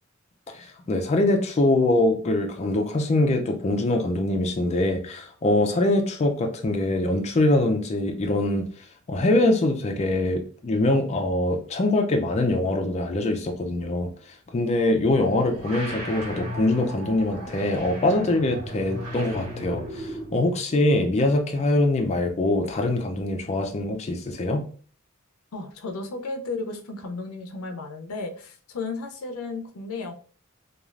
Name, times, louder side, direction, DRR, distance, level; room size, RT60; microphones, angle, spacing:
voice 1, 0.5-8.6 9.1-14.1 14.5-24.6, left 2 dB, 30° left, 3 dB, 0.4 m, -23 dB
sound 1, 15.0-20.5, equal, 80° right, 1.3 m, -36 dB
voice 2, 25.5-30.1, left 3 dB, 85° left, 5 dB, 0.5 m, -34 dB
3.1 x 2.3 x 2.4 m, 0.42 s
head